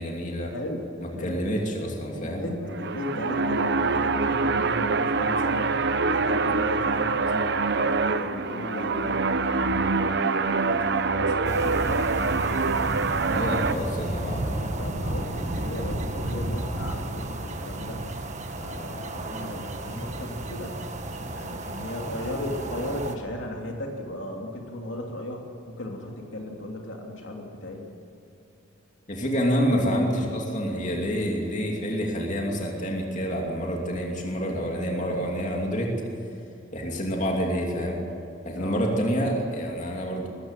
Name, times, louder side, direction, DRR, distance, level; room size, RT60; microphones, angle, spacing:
voice 1, 0.0-0.5 1.0-2.4 13.3-14.7 22.1-22.3 29.1-35.9 36.7-38.0 38.4-40.3, equal, 40° left, 0 dB, 2.8 m, -28 dB
voice 2, 2.1-7.5 7.8-9.3 9.5-12.1 14.8-18.0 18.5-20.8 21.3-27.8 38.6-38.8, left 1 dB, 65° left, 1 dB, 3.0 m, -36 dB
sound 1, 2.6-13.7, right 4 dB, 55° right, 0.8 m, -25 dB
sound 2, 11.4-23.1, right 1 dB, 35° right, 1.5 m, -33 dB
21.0 x 14.5 x 9.2 m, 2.8 s
head